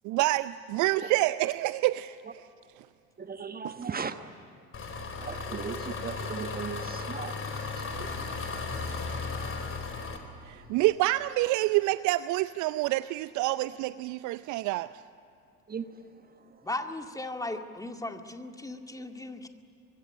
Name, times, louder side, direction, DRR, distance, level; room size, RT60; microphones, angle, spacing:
voice 1, 0.1-2.2 3.6-3.7 10.5-14.9, right 18 dB, 45° right, 16 dB, 0.6 m, -27 dB
voice 2, 3.2-4.1 5.2-7.3 7.7-8.1 15.7-15.8, right 6 dB, 20° right, 10 dB, 1.3 m, -37 dB
Engine, 4.7-10.2, left 4 dB, 30° left, 4.3 m, -35 dB
voice 3, 16.6-19.5, left 2 dB, 10° left, 5 dB, 2.0 m, -37 dB
25.0 x 23.0 x 9.9 m, 2.6 s
figure-of-eight pair, 65°, 42 cm